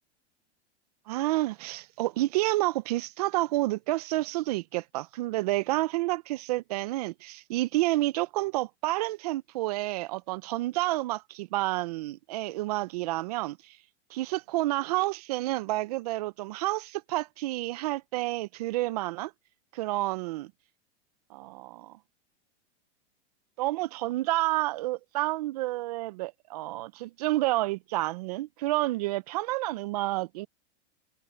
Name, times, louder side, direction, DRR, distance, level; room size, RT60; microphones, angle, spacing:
voice 1, 1.1-13.8 14.1-19.3 19.7-20.5 21.3-21.9 23.6-30.5, right 18 dB, 35° right, 0.4 m, -29 dB
supercardioid pair, 165°, 35 cm